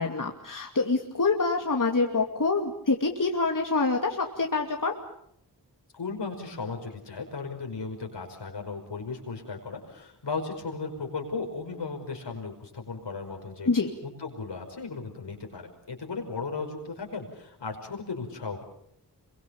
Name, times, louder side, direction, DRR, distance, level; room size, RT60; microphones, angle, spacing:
voice 1, 0.0-4.9 13.7-13.9, left 3 dB, 50° left, 2 dB, 2.6 m, -26 dB
voice 2, 5.9-13.7 14.0-18.6, left 4 dB, 85° left, 2 dB, 5.4 m, -36 dB
26.5 x 23.5 x 7.1 m, 0.73 s
cardioid pair, 50°, 41 cm